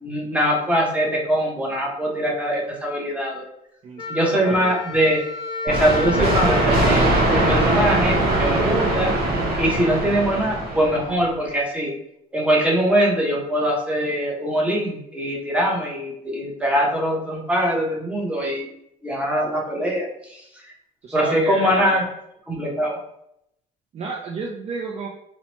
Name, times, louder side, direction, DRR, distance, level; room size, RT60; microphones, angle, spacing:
voice 1, 0.0-3.4 4.1-5.2 5.6-9.1 9.6-11.9 12.3-18.7 19.0-20.6 21.1-22.0 22.5-23.0, equal, 5° right, -2 dB, 0.7 m, -22 dB
voice 2, 3.8-4.8 21.0-22.1 23.9-25.1, right 4 dB, 40° right, 0 dB, 0.4 m, -31 dB
Wind instrument woodwind instrument, 4.0-8.8, left 3 dB, 30° left, 0.6 m, -32 dB
sound 1, 5.7-11.3, right 1 dB, 65° right, 0.8 m, -21 dB
2.8 x 2.1 x 2.9 m, 0.78 s
cardioid pair, 110°, 17 cm